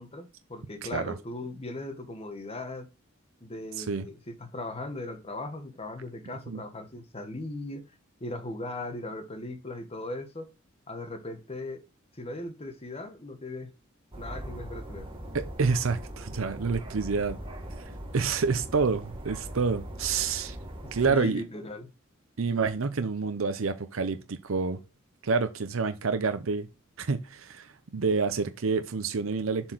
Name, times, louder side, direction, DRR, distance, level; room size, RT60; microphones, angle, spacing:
voice 1, 0.0-2.9 3.4-7.9 8.2-10.5 10.9-11.8 12.1-13.7 14.2-15.1 20.8-21.9, left 2 dB, 30° left, 1.2 m, -38 dB
sound 1, 14.1-21.1, equal, 25° right, 1.7 m, -40 dB
voice 2, 15.3-17.4 18.1-20.6 20.9-21.5 22.4-24.8 25.2-26.7 27.0-29.7, right 4 dB, 75° right, 0.6 m, -28 dB
7.3 x 4.5 x 4.5 m
head